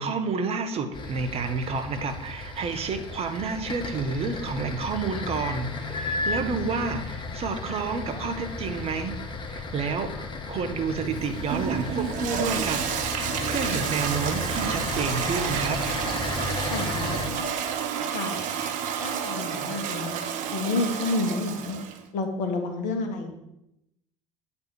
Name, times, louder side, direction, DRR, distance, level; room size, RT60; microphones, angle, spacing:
voice 1, 0.0-9.2 9.5-15.8, right 4 dB, 40° right, 8 dB, 1.2 m, -30 dB
sound 1, 0.9-17.3, left 3 dB, 30° left, 1.2 m, -34 dB
Toilet flush, 11.0-22.0, right 8 dB, 55° right, 0.9 m, -30 dB
voice 2, 16.7-17.5 18.1-18.4 19.0-20.2 20.5-21.8 22.1-23.4, left 3 dB, 55° left, 5 dB, 1.8 m, -30 dB
8.5 x 4.3 x 6.4 m, 0.84 s
hypercardioid pair, 70°, 15 cm